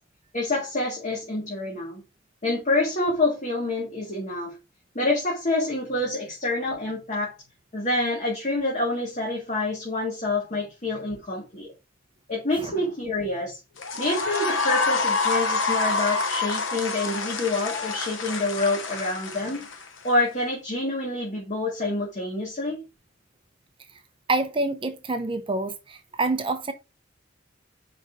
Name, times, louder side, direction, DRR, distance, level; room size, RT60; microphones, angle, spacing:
voice 1, 0.3-2.0 2.4-4.5 4.9-7.3 7.7-11.7 12.3-13.6 14.0-19.7 20.0-22.8, left 2 dB, 40° left, 1.8 m, -27 dB
sound 1, 13.8-20.1, left 4 dB, 85° left, 0.9 m, -27 dB
voice 2, 24.3-26.7, right 2 dB, 25° right, 0.7 m, -27 dB
5.1 x 3.8 x 5.5 m
head